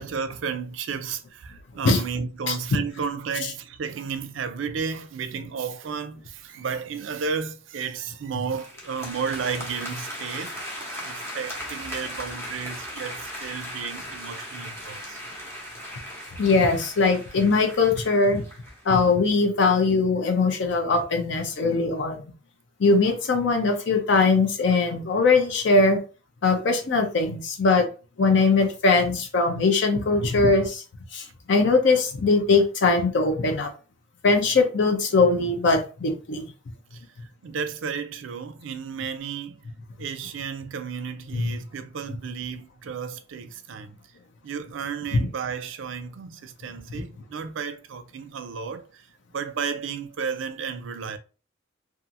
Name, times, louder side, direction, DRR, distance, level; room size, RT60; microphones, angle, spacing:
voice 1, 0.0-10.5 11.0-15.2 36.9-37.0 37.4-39.6 40.0-44.0 44.4-48.8 49.3-51.2, right 6 dB, 70° right, 0.4 m, -33 dB
sound 1, 8.5-18.8, equal, 15° left, 0.8 m, -38 dB
voice 2, 16.4-18.4 18.9-22.2 22.8-26.0 26.4-27.9 28.2-30.8 31.1-33.7 34.2-36.5 41.3-41.6 45.1-45.3 46.9-47.0, left 3 dB, 65° left, 0.5 m, -21 dB
2.7 x 2.4 x 2.5 m
head